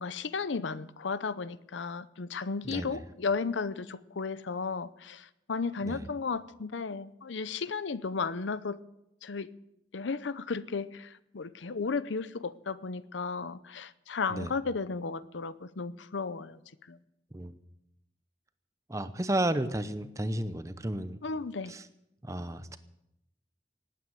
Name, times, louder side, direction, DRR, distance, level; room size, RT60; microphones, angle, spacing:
voice 1, 0.0-8.8 9.2-9.5 9.9-16.6 16.9-17.0 21.2-21.7, left 4 dB, 85° left, 0.7 m, -34 dB
voice 2, 2.6-3.0 5.9-6.1 14.3-14.5 17.3-17.6 18.9-21.2 21.7-21.8 22.2-22.8, right 1 dB, 15° right, 0.7 m, -32 dB
18.5 x 9.2 x 7.8 m
head